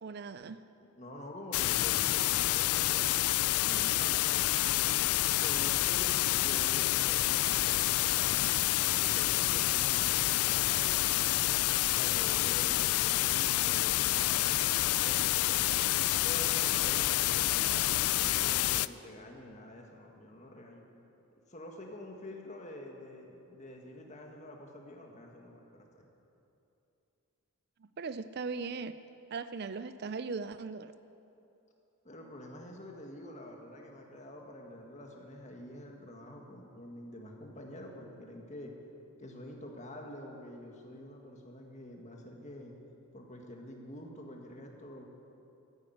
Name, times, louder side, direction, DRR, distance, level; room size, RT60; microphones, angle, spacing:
voice 1, 0.0-0.6 12.7-12.8 28.0-28.9 29.3-30.9, right 4 dB, 45° right, 13 dB, 0.4 m, -38 dB
voice 2, 0.8-4.9 5.3-11.5 11.9-15.8 16.2-20.8 21.5-26.1 32.0-38.7 39.2-42.7 43.1-45.1, left 1 dB, 30° left, 1 dB, 1.8 m, -47 dB
sound 1, 1.5-18.9, left 15 dB, 75° left, 0.4 m, -28 dB
14.0 x 10.0 x 9.3 m, 2.9 s
head